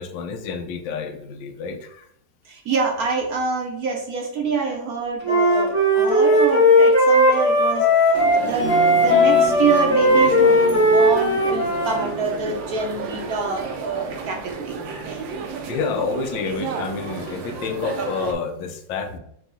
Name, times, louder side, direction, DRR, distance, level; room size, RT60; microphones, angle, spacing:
voice 1, 0.0-2.1 14.9-15.1 15.7-19.2, left 5 dB, 85° left, 5 dB, 1.3 m, -29 dB
voice 2, 2.5-7.9 8.3-14.8 15.1-15.2, right 4 dB, 60° right, 1 dB, 1.1 m, -26 dB
Wind instrument woodwind instrument, 5.2-12.1, left 1 dB, 30° left, 0.6 m, -17 dB
sound 1, 8.1-18.3, right 5 dB, 80° right, 1.5 m, -32 dB
sound 2, 8.6-12.7, right 1 dB, 65° left, 1.6 m, -33 dB
5.5 x 2.3 x 3.9 m, 0.71 s
omnidirectional pair, 2.0 m